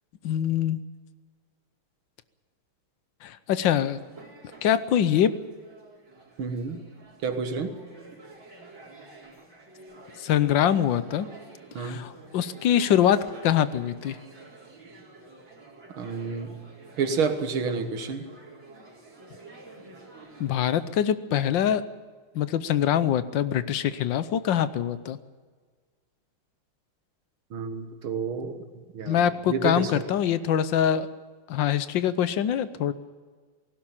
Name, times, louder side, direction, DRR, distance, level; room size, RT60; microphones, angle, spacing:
voice 1, 0.2-0.8 3.2-4.0 4.6-5.3 10.2-11.3 11.8-14.2 20.4-21.8 22.3-25.2 29.1-31.1 31.5-32.9, left 10 dB, 70° left, 14 dB, 1.5 m, -24 dB
sound 1, 3.8-20.9, right 2 dB, 65° right, 4.9 m, -49 dB
voice 2, 6.4-6.8 7.2-7.8 11.7-12.0 15.9-16.6 17.0-18.3 27.5-30.0, right 5 dB, 85° right, 7 dB, 2.3 m, -30 dB
18.0 x 16.5 x 8.8 m, 1.5 s
omnidirectional pair, 2.2 m